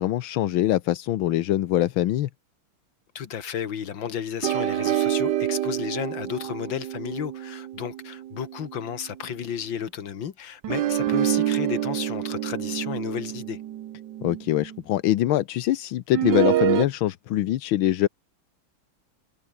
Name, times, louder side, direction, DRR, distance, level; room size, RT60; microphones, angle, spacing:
voice 1, 0.0-2.3 14.2-18.1, left 13 dB, 85° left, 1.6 m, -23 dB
voice 2, 3.2-13.6, left 8 dB, 70° left, 2.3 m, -33 dB
sound 1, 4.4-9.0 10.6-14.8 16.1-16.8, right 12 dB, 65° right, 1.4 m, -27 dB
omnidirectional pair, 2.2 m